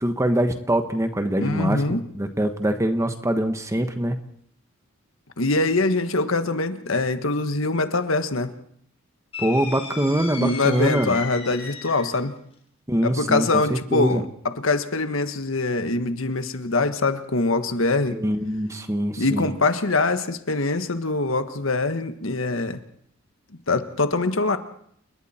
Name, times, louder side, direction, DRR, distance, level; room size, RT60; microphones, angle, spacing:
voice 1, 0.0-4.2 9.4-11.2 12.9-14.2 18.1-19.5, right 1 dB, 15° right, 7 dB, 1.3 m, -24 dB
voice 2, 1.4-2.0 5.4-8.5 10.4-12.3 13.0-14.2 14.6-18.2 19.2-22.8 23.7-24.6, left 3 dB, 70° left, 9 dB, 1.5 m, -23 dB
sound 1, 9.3-12.2, left 5 dB, 30° left, 3.9 m, -35 dB
29.5 x 20.0 x 4.4 m, 0.67 s
head